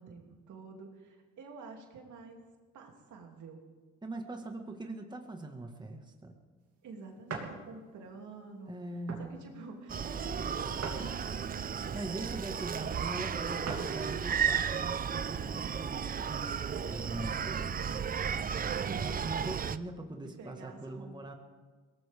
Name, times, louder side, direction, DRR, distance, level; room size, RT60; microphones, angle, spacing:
voice 1, 0.0-2.4 2.7-3.6 6.8-12.2 17.5-19.1 20.1-21.2, right 4 dB, 75° right, 1 dB, 2.8 m, -50 dB
voice 2, 4.0-6.3 8.7-9.4 11.9-17.6 19.0-21.3, right 2 dB, 15° right, 3 dB, 1.6 m, -42 dB
sound 1, 7.3-7.6 8.2-8.3 9.1-9.3 10.8-11.6 13.6-14.0 14.5-14.6 16.2-16.9, right 4 dB, 55° right, 2.8 m, -41 dB
Screaming, 9.9-19.8, right 7 dB, 30° right, 0.5 m, -34 dB
22.5 x 17.5 x 3.6 m, 1.4 s
cardioid pair, 90°, 30 cm